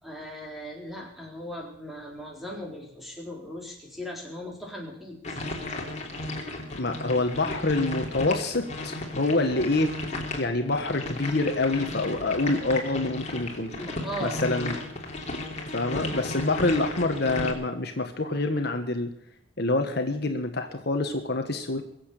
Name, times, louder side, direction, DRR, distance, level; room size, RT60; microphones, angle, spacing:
voice 1, 0.0-5.4 13.8-14.4, equal, ahead, -1 dB, 4.0 m, -38 dB
sound 1, 5.2-17.5, left 1 dB, 35° left, 3.0 m, -34 dB
voice 2, 6.7-10.0 10.4-13.7 14.2-14.8 15.7-19.1 19.6-21.8, left 2 dB, 55° left, 5 dB, 1.6 m, -26 dB
23.0 x 8.3 x 6.8 m, 0.74 s
head